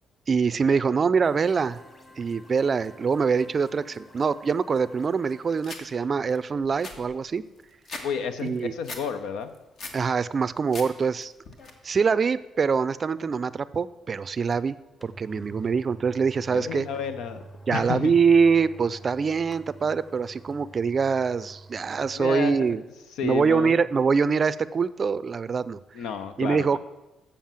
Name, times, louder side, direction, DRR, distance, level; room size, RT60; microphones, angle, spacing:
voice 1, 0.3-1.8 2.2-7.4 8.4-8.7 9.9-11.3 11.8-14.8 15.0-16.9 17.7-22.8 23.2-25.8 26.4-26.8, right 5 dB, 40° right, 17 dB, 0.4 m, -24 dB
sound 1, 1.2-5.6, left 2 dB, 25° left, 2.0 m, -52 dB
sound 2, 5.6-5.8 6.3-6.4 6.6-8.1 8.4-9.0 9.4-10.0 10.4-10.9 11.2-11.7, left 3 dB, 60° left, 1.5 m, -39 dB
voice 2, 8.0-9.5 16.5-18.2 22.1-22.9 23.2-23.8 25.9-26.8, left 7 dB, 85° left, 10 dB, 0.8 m, -31 dB
sound 3, 14.5-14.6 15.0-22.3 22.7-22.8, right 2 dB, 5° left, 0.7 m, -47 dB
7.2 x 7.0 x 7.4 m, 1.0 s
cardioid pair, 90°, 0 cm